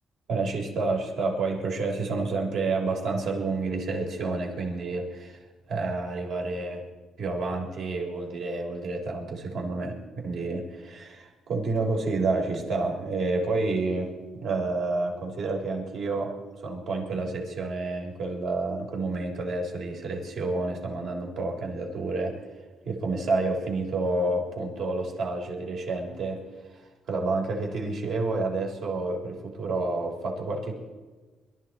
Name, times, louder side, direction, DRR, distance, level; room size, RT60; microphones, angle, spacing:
voice 1, 0.3-5.4 5.7-6.8 7.2-22.4 22.9-26.4 26.7-26.8 27.1-30.8, right 3 dB, 70° right, 0 dB, 3.7 m, -29 dB
22.0 x 13.0 x 4.3 m, 1.3 s
cardioid pair, 90°, 0 cm